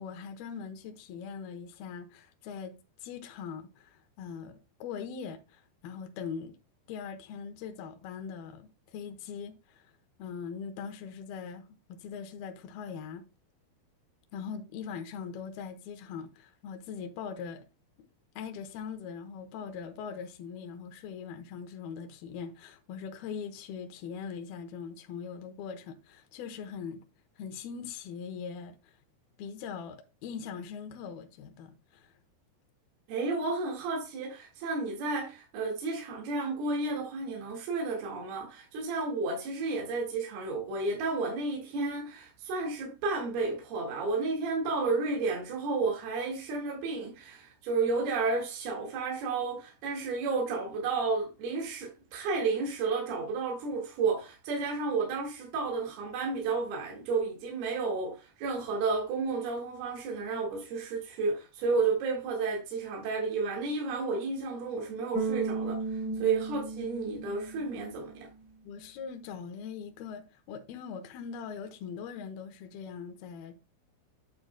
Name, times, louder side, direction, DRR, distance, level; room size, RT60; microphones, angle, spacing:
voice 1, 0.0-2.7 3.0-6.6 6.9-9.9 10.2-13.3 14.3-17.7 18.0-18.1 18.4-27.0 27.4-29.0 29.4-32.1 66.1-66.3 68.6-73.6, left 6 dB, 75° left, 2.7 m, -41 dB
voice 2, 33.1-68.3, right 4 dB, 70° right, 3.8 m, -32 dB
Bass guitar, 65.1-68.3, right 3 dB, 25° right, 3.6 m, -35 dB
9.0 x 8.8 x 2.2 m
omnidirectional pair, 4.7 m